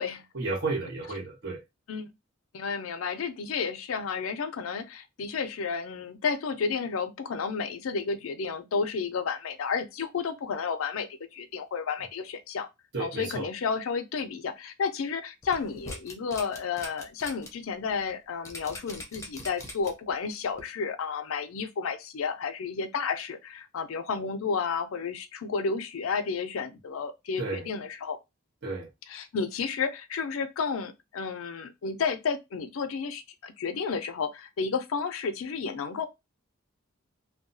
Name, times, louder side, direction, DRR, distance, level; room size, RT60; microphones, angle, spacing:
voice 1, 0.3-1.6 12.9-13.5 27.4-27.7 28.6-28.9, right 3 dB, 60° right, 1.2 m, -32 dB
voice 2, 2.5-12.7 13.0-28.2 29.1-36.1, left 5 dB, 80° left, 0.4 m, -32 dB
sound 1, 15.4-17.5 17.9-18.0 18.5-20.1 20.6-20.7, left 2 dB, 15° left, 0.6 m, -41 dB
2.7 x 2.2 x 2.6 m
head